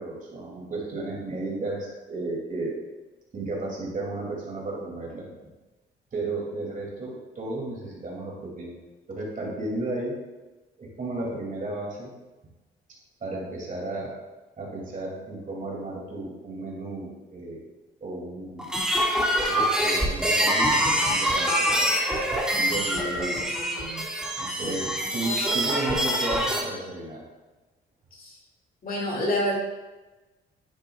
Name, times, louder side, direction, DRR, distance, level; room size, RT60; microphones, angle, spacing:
voice 1, 0.0-2.8 3.3-5.3 6.1-8.8 9.1-10.1 10.8-12.1 13.2-14.2 14.6-17.6 18.0-18.7 19.4-21.9 22.6-23.4 24.4-27.2, right 2 dB, 40° right, -2 dB, 2.6 m, -33 dB
sound 1, 18.6-26.6, equal, 5° right, 2.0 m, -25 dB
voice 2, 22.9-24.0 24.6-24.9 28.1-28.4 28.8-29.5, left 1 dB, 45° left, -2 dB, 2.4 m, -30 dB
10.0 x 7.5 x 2.4 m, 1.2 s
cardioid pair, 90°, 20 cm